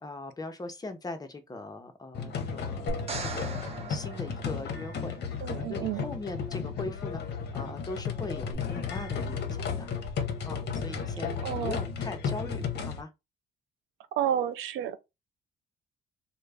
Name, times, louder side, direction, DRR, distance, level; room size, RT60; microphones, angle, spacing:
voice 1, 0.0-3.6 3.9-9.9 10.5-13.1, left 2 dB, 20° left, 0.6 m, -40 dB
sound 1, 2.1-13.0, left 6 dB, 55° left, 0.6 m, -34 dB
sound 2, 2.9-5.2 8.5-8.6, right 3 dB, 30° right, 0.7 m, -39 dB
voice 2, 5.4-6.0 11.4-11.8 14.2-15.0, right 10 dB, 85° right, 0.4 m, -30 dB
2.3 x 2.1 x 3.3 m
cardioid pair, 90°, 20 cm